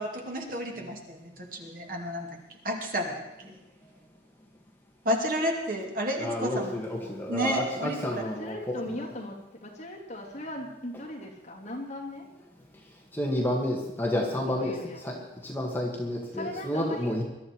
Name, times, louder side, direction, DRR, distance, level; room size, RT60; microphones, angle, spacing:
voice 1, 0.0-2.4 2.6-3.5 5.0-6.7 7.3-8.0, equal, 50° right, 1 dB, 2.7 m, -31 dB
voice 2, 6.2-8.8 13.1-17.2, left 1 dB, 10° left, -1 dB, 1.9 m, -30 dB
voice 3, 8.4-12.3 14.0-15.3 16.3-17.1, left 1 dB, 40° left, -2 dB, 3.1 m, -39 dB
21.5 x 12.5 x 4.7 m, 0.97 s
head